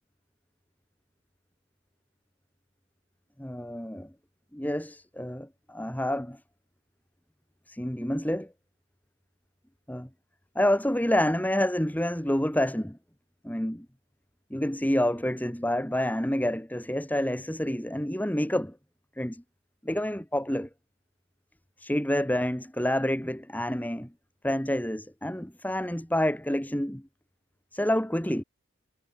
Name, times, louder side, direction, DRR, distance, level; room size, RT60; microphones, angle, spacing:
voice 1, 3.4-4.1 4.5-6.4 7.7-8.5 9.9-10.1 10.6-13.0 13.4-13.9 14.5-18.8 19.2-19.4 19.8-20.7 21.8-24.1 24.4-27.0 27.7-28.4, left 1 dB, 10° left, 1.9 m, -28 dB
head